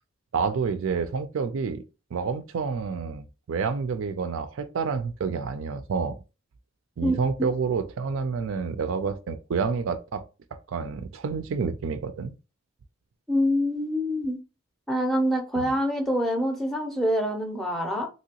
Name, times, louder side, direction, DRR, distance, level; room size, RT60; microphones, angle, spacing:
voice 1, 0.3-1.8 2.1-6.2 7.0-10.2 10.5-12.3 15.6-15.7, right 5 dB, 65° right, 0.4 m, -29 dB
voice 2, 7.0-7.5 13.3-14.4 14.9-18.1, equal, ahead, 0.6 m, -26 dB
2.9 x 2.7 x 2.9 m
head